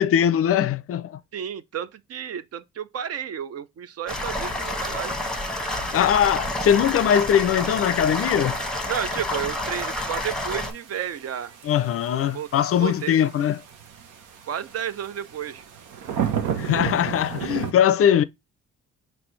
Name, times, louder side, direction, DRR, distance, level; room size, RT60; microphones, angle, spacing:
voice 1, 0.0-1.2 5.9-8.6 11.6-13.6 16.6-18.2, left 9 dB, 50° left, 0.4 m, -21 dB
voice 2, 1.3-5.2 8.9-11.5 12.1-12.5 12.8-13.3 14.5-15.6, right 9 dB, 55° right, 0.5 m, -32 dB
sound 1, 4.1-10.7, left 1 dB, ahead, 0.9 m, -29 dB
sound 2, 4.3-17.7, right 9 dB, 90° right, 0.9 m, -36 dB
4.3 x 3.1 x 3.1 m
cardioid pair, 90°, 30 cm